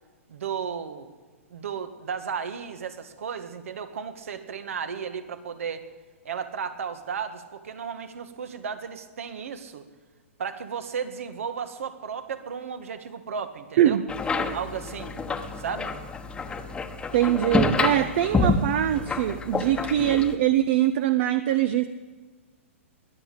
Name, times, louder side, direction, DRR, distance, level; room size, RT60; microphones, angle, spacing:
voice 1, 0.3-1.1 1.5-5.8 6.2-9.9 10.4-14.0 14.5-15.1 15.6-15.9 19.6-19.8, right 7 dB, 70° right, 9 dB, 1.7 m, -34 dB
voice 2, 13.8-14.1 17.1-21.9, right 12 dB, 55° right, 11 dB, 0.8 m, -23 dB
sound 1, 14.1-20.4, left 3 dB, 10° left, 1.2 m, -28 dB
21.5 x 7.9 x 8.5 m, 1.4 s
hypercardioid pair, 125°, 7 cm